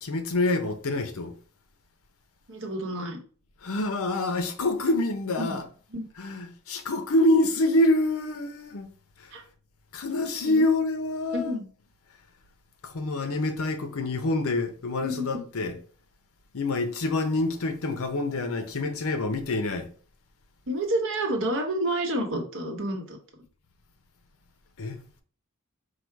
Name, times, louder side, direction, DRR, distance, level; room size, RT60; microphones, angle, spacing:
voice 1, 0.0-1.4 3.6-5.7 6.2-8.9 9.2-9.3 9.9-11.6 12.8-15.8 16.5-19.9 24.8-25.0, left 2 dB, 65° left, 0.7 m, -26 dB
voice 2, 2.5-3.2 5.4-5.6 5.9-6.0 9.3-9.4 10.5-10.7 11.3-11.7 13.2-13.3 15.0-15.5 20.7-23.2, right 1 dB, 60° right, 1.1 m, -29 dB
4.8 x 2.3 x 4.5 m
head